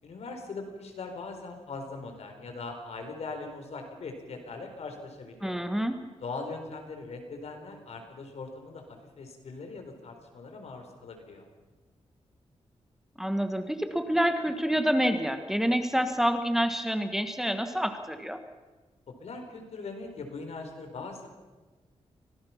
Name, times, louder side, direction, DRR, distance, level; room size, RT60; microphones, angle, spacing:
voice 1, 0.0-5.6 6.2-11.5 19.2-21.3, left 3 dB, 75° left, 5 dB, 4.1 m, -40 dB
voice 2, 5.4-6.0 13.2-18.4, equal, 5° right, 7 dB, 1.5 m, -27 dB
25.0 x 18.0 x 5.9 m, 1.3 s
wide cardioid pair, 115°, 11 cm